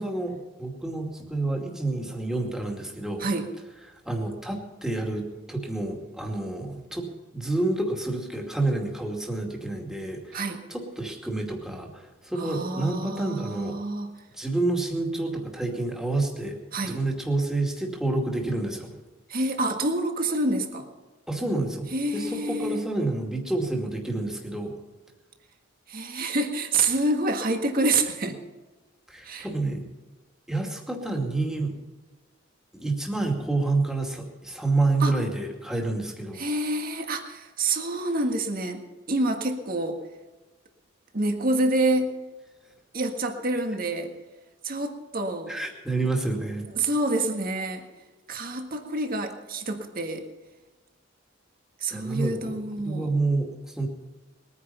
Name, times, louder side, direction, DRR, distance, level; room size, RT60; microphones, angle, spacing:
voice 1, 0.0-3.3 4.0-7.1 7.3-10.4 10.7-13.8 14.4-16.6 16.8-18.9 21.3-24.7 29.1-29.9 30.5-31.7 32.7-36.4 45.5-46.6 51.9-52.6 52.8-53.9, right 2 dB, 5° right, 0 dB, 2.3 m, -28 dB
voice 2, 12.4-14.1 16.7-17.0 19.3-20.9 21.9-22.8 25.9-28.4 29.2-29.5 35.0-35.1 36.3-38.8 39.1-40.0 41.1-42.1 42.9-44.1 44.6-45.6 46.7-47.8 48.3-50.3 51.8-53.1, right 2 dB, 45° right, 5 dB, 1.7 m, -27 dB
21.0 x 9.9 x 5.7 m, 1.2 s
head